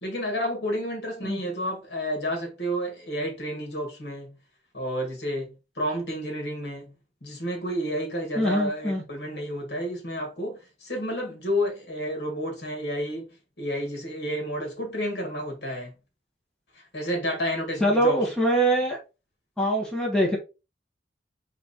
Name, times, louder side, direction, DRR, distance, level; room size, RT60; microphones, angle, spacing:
voice 1, 0.0-4.4 4.7-6.9 7.2-13.3 13.6-15.9 16.9-18.3, equal, 70° left, 2.0 m, -30 dB
voice 2, 8.3-9.0 17.8-19.0 19.6-20.4, right 1 dB, 5° left, 1.4 m, -23 dB
3.9 x 3.3 x 4.1 m
head